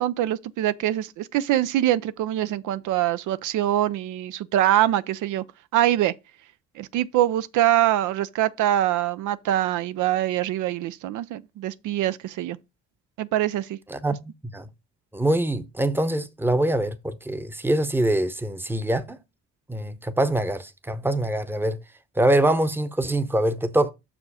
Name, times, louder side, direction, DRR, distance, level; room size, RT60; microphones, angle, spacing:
voice 1, 0.0-5.4 5.7-6.1 6.8-12.6 13.2-13.8, right 13 dB, 80° right, 0.5 m, -24 dB
voice 2, 13.9-14.7 15.1-19.2 19.7-21.8 22.2-23.9, right 1 dB, 5° right, 0.8 m, -24 dB
6.2 x 5.0 x 4.8 m
cardioid pair, 90°, 30 cm